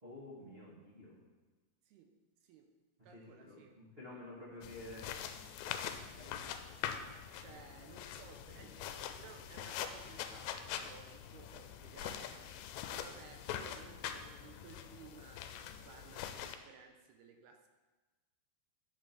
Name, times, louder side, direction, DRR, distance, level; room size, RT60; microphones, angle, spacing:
voice 1, 0.0-1.1 3.1-5.2 6.1-6.4, left 2 dB, 25° right, -8 dB, 1.4 m, -50 dB
voice 2, 1.9-2.7 3.0-3.8 7.4-17.7, right 6 dB, 80° right, 5 dB, 2.6 m, -57 dB
sound 1, 4.6-16.6, left 9 dB, 85° left, 2.8 m, -44 dB
10.0 x 5.3 x 6.1 m, 1.2 s
omnidirectional pair, 4.9 m